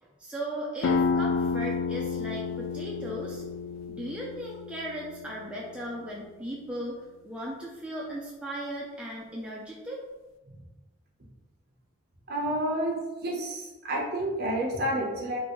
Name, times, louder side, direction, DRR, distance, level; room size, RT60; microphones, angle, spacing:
voice 1, 0.0-3.4 3.9-7.0 7.2-10.0, right 1 dB, 5° right, -5 dB, 0.4 m, -37 dB
sound 1, 0.8-6.2, left 4 dB, 75° left, 0.3 m, -31 dB
voice 2, 12.3-15.4, right 1 dB, 50° right, -2 dB, 0.8 m, -30 dB
3.6 x 2.5 x 3.0 m, 1.1 s
head